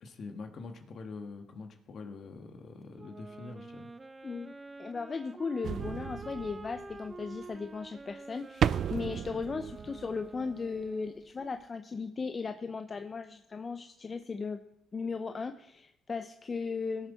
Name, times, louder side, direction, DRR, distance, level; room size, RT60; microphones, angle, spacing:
voice 1, 0.0-3.9, left 4 dB, 60° left, 5 dB, 1.6 m, -44 dB
Wind instrument woodwind instrument, 3.0-11.3, right 3 dB, 25° right, 0.7 m, -48 dB
voice 2, 4.2-4.5 4.8-14.6 14.9-17.1, left 4 dB, 35° left, 8 dB, 0.7 m, -37 dB
sound 1, 5.6-7.1 8.6-10.5 10.9-11.0, right 9 dB, 60° right, 0.3 m, -33 dB
17.5 x 7.0 x 4.1 m, 0.79 s
supercardioid pair, 70°, 0 cm